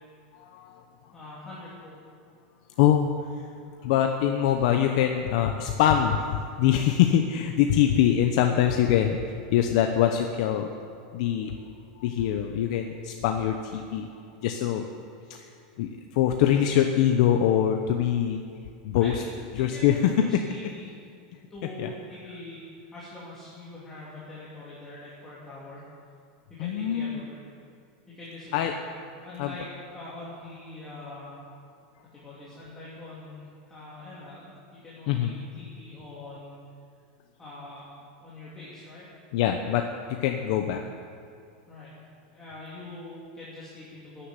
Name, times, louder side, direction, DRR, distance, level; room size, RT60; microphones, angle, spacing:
voice 1, 0.3-0.8 2.8-3.4 3.8-10.7 11.1-11.6 12.0-14.1 14.4-14.8 15.3-15.5 15.8-18.4 18.8-19.2 19.6-20.1 21.8-21.9 26.6-27.2 28.5-28.7 29.4-29.5 35.1-35.4 39.3-40.8, left 10 dB, 50° left, 4 dB, 1.0 m, -24 dB
voice 2, 1.1-2.0 19.0-20.8 21.5-25.8 26.5-27.4 28.1-31.3 32.1-36.6 37.4-39.1 41.7-41.9 42.3-44.3, left 2 dB, 10° left, -9 dB, 3.1 m, -43 dB
13.5 x 10.0 x 9.8 m, 2.4 s
supercardioid pair, 165°, 4 cm